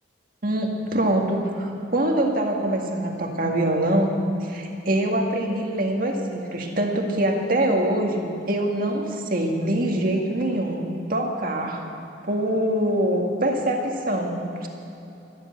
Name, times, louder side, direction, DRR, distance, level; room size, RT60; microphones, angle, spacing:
voice 1, 0.4-4.1 4.4-11.9 12.3-14.7, right 1 dB, 50° right, 1 dB, 1.9 m, -24 dB
13.0 x 13.0 x 8.0 m, 3.0 s
head